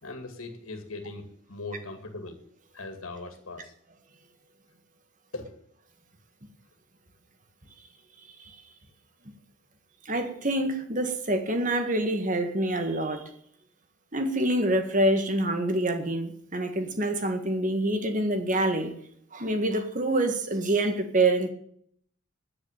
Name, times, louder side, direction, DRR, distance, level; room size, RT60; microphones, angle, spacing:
voice 1, 0.0-2.4 2.7-3.7 5.3-5.5, left 2 dB, 85° left, 2.4 m, -39 dB
voice 2, 10.1-13.3 14.1-18.9 19.3-21.5, right 1 dB, 40° right, 1.8 m, -26 dB
9.9 x 9.8 x 9.2 m
head